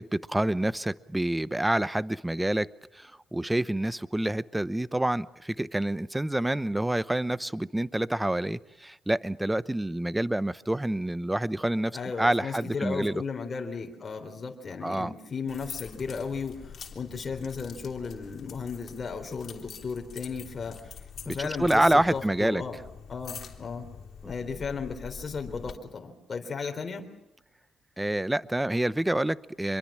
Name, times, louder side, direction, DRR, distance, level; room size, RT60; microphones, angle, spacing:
voice 1, 0.0-13.2 14.8-15.1 21.3-22.6 24.2-24.3 28.0-29.8, right 1 dB, 10° right, 16 dB, 0.8 m, -27 dB
voice 2, 11.9-20.9 21.3-22.8 23.1-23.9 24.2-27.1, left 5 dB, 35° left, 3 dB, 3.8 m, -35 dB
sound 1, 15.5-25.7, left 7 dB, 55° left, 3.2 m, -45 dB
26.0 x 22.5 x 7.5 m, 0.87 s
cardioid pair, 90°, 0 cm